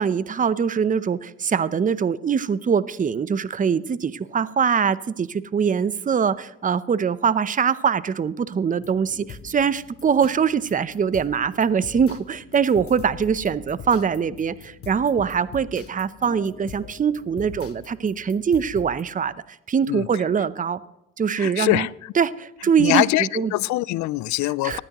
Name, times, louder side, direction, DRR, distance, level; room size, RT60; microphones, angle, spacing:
voice 1, 0.0-19.3 19.7-20.8 21.2-21.9 22.2-23.0 23.4-23.5 24.6-24.8, right 7 dB, 25° right, 0.7 m, -23 dB
sound 1, 8.8-19.0, left 7 dB, 50° left, 1.2 m, -43 dB
voice 2, 19.9-20.2 21.4-22.1 22.8-24.8, left 18 dB, 70° left, 0.5 m, -23 dB
19.0 x 12.5 x 3.0 m
supercardioid pair, 70°, 31 cm